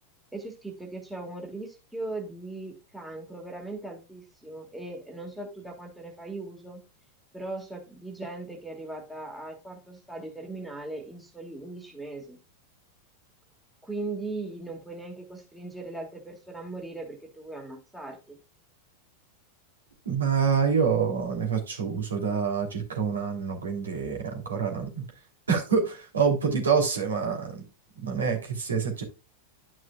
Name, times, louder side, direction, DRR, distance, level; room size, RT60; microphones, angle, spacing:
voice 1, 0.3-6.8 7.3-12.4 13.8-18.4, right 2 dB, 5° right, 1.9 m, -39 dB
voice 2, 20.0-25.0 25.5-27.6 28.0-29.0, right 6 dB, 70° right, 3.0 m, -26 dB
11.5 x 6.2 x 2.3 m
figure-of-eight pair, 90°, 0 cm